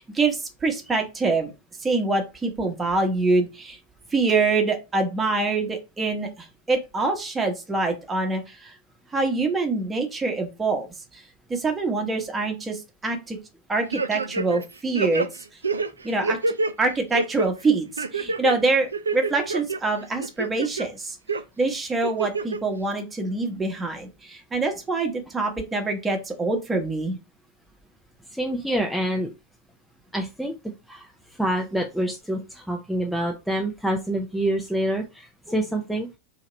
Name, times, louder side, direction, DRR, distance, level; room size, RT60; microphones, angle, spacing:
voice 1, 0.0-1.5 1.8-3.8 4.1-8.7 9.1-10.9 11.1-11.2 11.5-13.4 13.7-15.3 16.0-16.4 16.8-21.2 21.6-27.2, right 3 dB, 15° right, 4 dB, 1.0 m, -25 dB
sound 1, 13.9-14.7 14.9-16.7 17.1-17.5 18.0-18.6 18.9-19.8 20.2-20.9 21.3-21.4 22.0-22.6 23.0-23.1, right 3 dB, 75° right, 0.4 m, -26 dB
voice 2, 28.3-29.3 30.1-30.5 30.9-31.1 31.4-36.2, right 1 dB, ahead, 1 dB, 0.5 m, -26 dB
2.9 x 2.8 x 4.2 m, 0.27 s
figure-of-eight pair, 90°, 0 cm